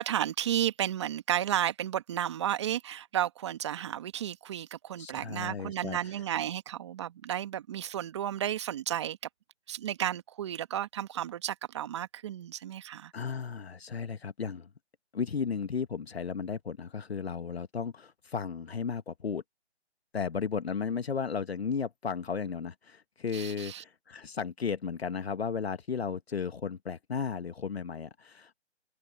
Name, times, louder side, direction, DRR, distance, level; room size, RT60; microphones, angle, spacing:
voice 1, 0.0-9.2 9.7-13.1 23.3-23.8, right 11 dB, 25° right, 1.6 m, -32 dB
voice 2, 5.0-6.0 13.1-14.7 15.1-19.4 20.1-28.5, left 6 dB, 65° left, 1.6 m, -34 dB
open air
hypercardioid pair, 165°, 34 cm